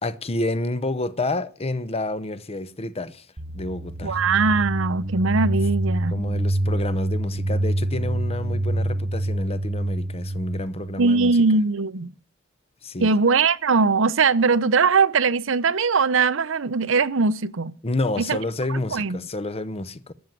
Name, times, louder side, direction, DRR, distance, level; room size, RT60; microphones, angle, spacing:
voice 1, 0.0-3.3 3.5-4.2 6.1-11.3 12.8-13.1 17.8-20.1, left 2 dB, 30° left, 0.8 m, -29 dB
sound 1, 3.4-11.1, right 1 dB, 35° right, 0.9 m, -26 dB
voice 2, 4.0-6.2 11.0-12.1 13.0-17.7 18.2-18.4 18.7-19.2, right 4 dB, 70° right, 0.7 m, -21 dB
13.5 x 7.3 x 9.2 m
head